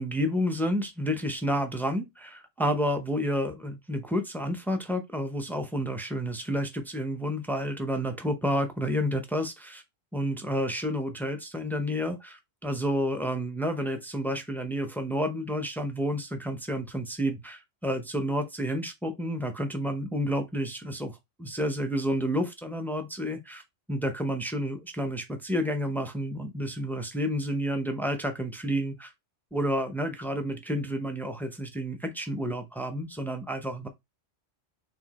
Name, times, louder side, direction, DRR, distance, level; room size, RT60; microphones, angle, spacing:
voice 1, 0.0-9.8 10.1-23.6 23.9-29.1 29.5-33.9, equal, ahead, 0.5 m, -30 dB
4.4 x 3.5 x 3.0 m
omnidirectional pair, 1.3 m